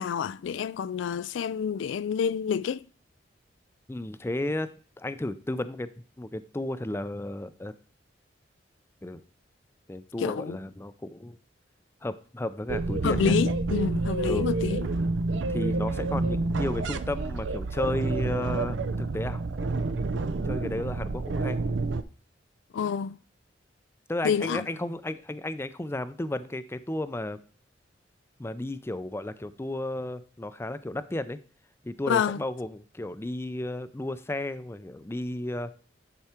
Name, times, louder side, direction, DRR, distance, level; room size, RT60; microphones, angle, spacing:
voice 1, 0.0-2.8 10.2-10.6 13.0-14.9 22.7-23.2 24.2-24.7 32.1-32.4, left 7 dB, 80° left, 0.3 m, -28 dB
voice 2, 3.9-4.7 5.0-5.9 6.2-7.7 9.0-9.2 9.9-11.4 12.0-13.4 14.3-14.5 15.5-19.4 20.4-21.6 24.1-27.4 28.4-31.4 31.8-35.7, left 1 dB, 15° left, 0.4 m, -33 dB
sound 1, 12.7-22.0, right 3 dB, 75° right, 0.6 m, -28 dB
10.5 x 4.6 x 4.3 m
head